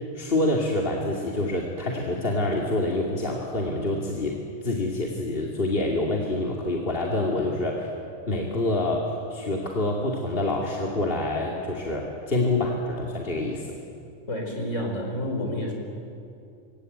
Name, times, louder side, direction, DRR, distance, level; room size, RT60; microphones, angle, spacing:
voice 1, 0.1-4.4 4.6-7.9 8.3-13.8, left 2 dB, 50° left, -1 dB, 2.6 m, -26 dB
voice 2, 14.3-15.7, left 1 dB, 80° left, 1 dB, 5.3 m, -29 dB
26.5 x 23.0 x 9.3 m, 2.6 s
omnidirectional pair, 1.3 m